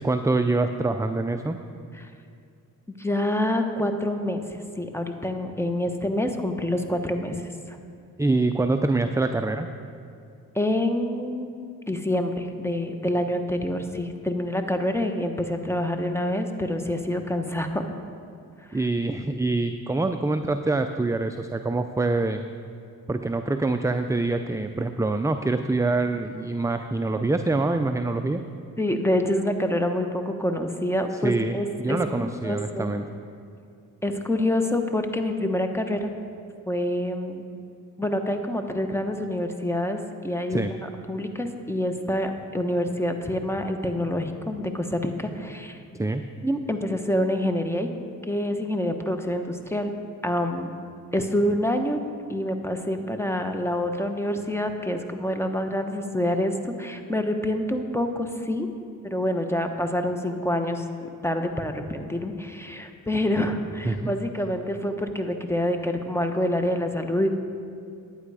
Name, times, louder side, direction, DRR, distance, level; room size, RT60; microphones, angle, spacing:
voice 1, 0.0-1.6 8.2-9.7 18.7-22.4 23.1-28.4 31.2-33.0 40.5-40.7 45.9-46.2 63.8-64.1, right 2 dB, 10° right, 7 dB, 0.4 m, -25 dB
voice 2, 3.0-7.4 7.7-7.8 10.5-11.5 11.9-17.8 18.7-18.8 28.8-32.9 34.0-36.1 36.7-37.4 38.0-40.0 40.2-40.8 41.1-45.8 46.4-47.9 48.3-49.9 50.2-50.7 51.1-52.0 52.3-58.7 59.0-60.8 61.2-67.3, left 1 dB, 5° left, 6 dB, 1.1 m, -27 dB
11.0 x 9.2 x 4.9 m, 2.5 s
cardioid pair, 60°, 36 cm